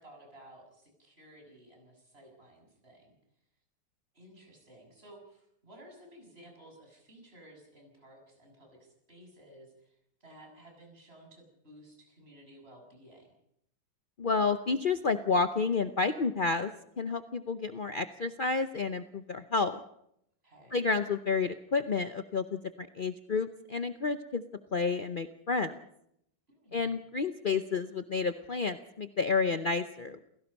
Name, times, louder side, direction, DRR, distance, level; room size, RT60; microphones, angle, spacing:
voice 1, 0.0-3.2 4.1-13.3 20.4-20.9 26.5-26.9, right 1 dB, 30° right, 1 dB, 7.3 m, -55 dB
voice 2, 14.2-16.7 17.0-19.8 20.7-24.4 24.7-25.7 26.7-30.2, left 4 dB, 60° left, 9 dB, 0.5 m, -30 dB
28.5 x 17.0 x 5.4 m, 0.75 s
omnidirectional pair, 2.1 m